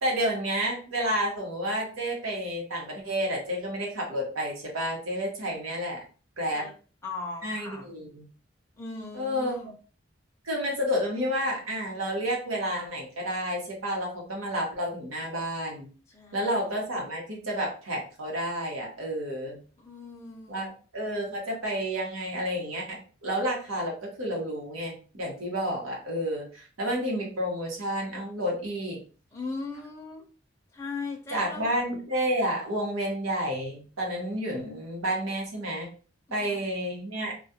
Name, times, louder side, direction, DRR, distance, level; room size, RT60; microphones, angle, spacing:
voice 1, 0.0-6.0 6.4-6.6 7.4-8.3 9.1-9.6 10.4-15.9 16.3-19.6 20.5-29.0 31.3-35.9 36.3-37.3, equal, 85° right, -1 dB, 1.1 m, -30 dB
voice 2, 7.0-7.9 8.8-9.7 16.1-16.7 19.8-20.7 29.3-30.2 30.7-31.7 36.3-36.6, left 3 dB, 15° left, -1 dB, 0.5 m, -39 dB
2.4 x 2.3 x 2.7 m, 0.38 s
head